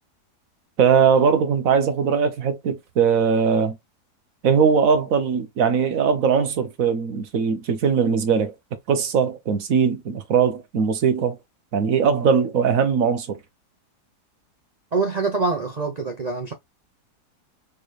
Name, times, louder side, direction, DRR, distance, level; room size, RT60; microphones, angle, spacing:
voice 1, 0.8-3.8 4.4-8.5 8.9-11.4 11.7-13.4, right 6 dB, 60° right, 1.3 m, -20 dB
voice 2, 14.9-16.5, right 4 dB, 85° right, 0.3 m, -25 dB
4.8 x 3.2 x 2.4 m
omnidirectional pair, 1.7 m